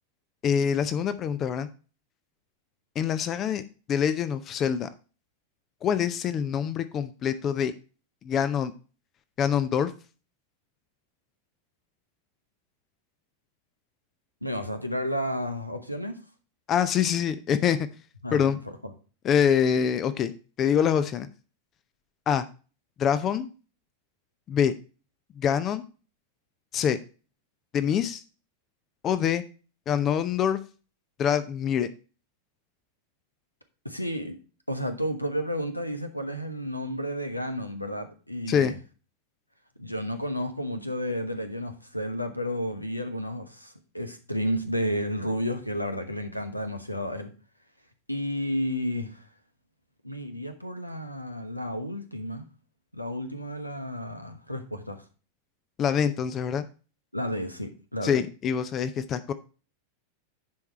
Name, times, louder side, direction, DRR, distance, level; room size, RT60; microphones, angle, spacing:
voice 1, 0.4-1.7 3.0-3.6 3.9-4.9 5.8-7.7 8.2-8.7 9.4-9.9 16.7-17.8 18.3-18.6 19.2-20.3 20.6-21.3 22.3-22.4 23.0-23.5 24.5-24.7 25.4-25.8 26.7-27.0 27.7-28.2 29.0-29.4 29.9-30.6 31.2-31.9 38.5-38.7 55.8-56.6 58.0-59.3, left 8 dB, 30° left, 0.6 m, -25 dB
voice 2, 14.4-16.2 18.2-18.4 33.8-34.4 34.7-38.8 39.8-47.3 48.1-49.3 50.0-52.4 52.9-55.0 57.1-58.1, equal, 90° left, 1.1 m, -32 dB
10.5 x 4.7 x 4.3 m
figure-of-eight pair, 90°, 0 cm